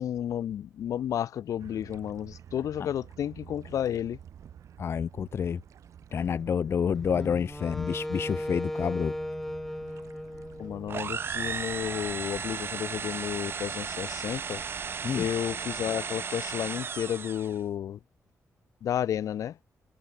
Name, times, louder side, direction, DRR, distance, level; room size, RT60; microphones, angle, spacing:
voice 1, 0.0-4.2 10.6-14.6 15.1-18.0 18.8-19.6, left 10 dB, 85° left, 6.1 m, -32 dB
sound 1, 1.6-16.0, right 9 dB, 70° right, 7.2 m, -50 dB
voice 2, 4.8-5.6 6.1-9.1 15.0-15.3, left 7 dB, 50° left, 0.8 m, -28 dB
Wind instrument woodwind instrument, 7.1-11.3, left 1 dB, 5° left, 3.1 m, -36 dB
sound 2, 10.9-17.6, right 6 dB, 45° right, 1.1 m, -35 dB
wide cardioid pair, 145°, 5 cm